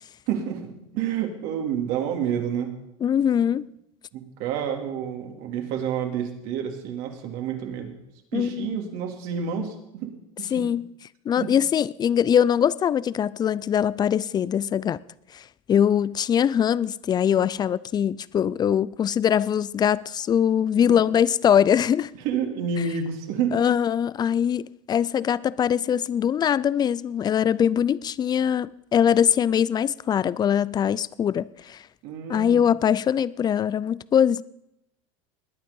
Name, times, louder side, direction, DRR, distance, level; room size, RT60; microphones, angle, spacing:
voice 1, 0.3-2.7 4.1-7.9 8.3-10.1 10.4-10.7 11.4-11.5 22.2-23.6 32.0-32.6, right 7 dB, 65° right, 3.1 m, -29 dB
voice 2, 3.0-3.7 8.3-8.8 10.5-10.9 11.3-15.0 15.3-15.4 15.7-22.1 23.5-31.8 32.3-34.4, left 8 dB, 25° left, 0.5 m, -22 dB
20.0 x 9.3 x 5.5 m
supercardioid pair, 120°, 16 cm